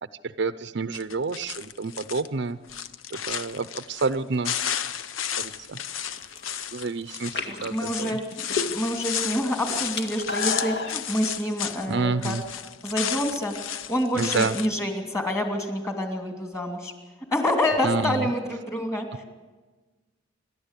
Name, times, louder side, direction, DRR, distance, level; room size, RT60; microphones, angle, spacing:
voice 1, 0.2-2.6 3.1-4.6 5.4-5.8 6.7-8.2 11.9-12.4 14.1-14.6 17.8-18.3, right 4 dB, 60° right, 13 dB, 0.6 m, -29 dB
sound 1, 0.9-2.3 2.6-4.2 4.4-11.9 12.2-14.7, left 9 dB, 80° left, 0.8 m, -33 dB
sound 2, 6.2-6.6 7.2-9.0 9.3-11.0, left 4 dB, 55° left, 2.0 m, -31 dB
voice 2, 7.5-8.2 8.7-12.3 12.8-13.5 13.9-16.9 17.3-19.3, left 1 dB, 15° left, 4 dB, 2.7 m, -27 dB
27.5 x 12.5 x 8.3 m, 1.3 s
head